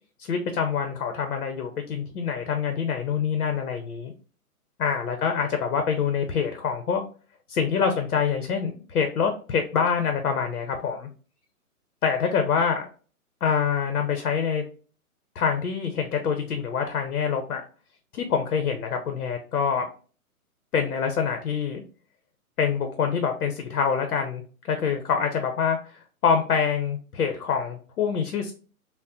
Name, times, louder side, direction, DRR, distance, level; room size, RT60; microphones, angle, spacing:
voice 1, 0.2-4.1 4.8-7.0 7.5-11.1 12.0-12.9 13.4-14.6 15.4-17.6 18.1-19.8 20.7-21.8 22.6-28.5, left 6 dB, 75° left, 6 dB, 0.7 m, -25 dB
3.6 x 2.0 x 2.6 m, 0.39 s
hypercardioid pair, 160°, 44 cm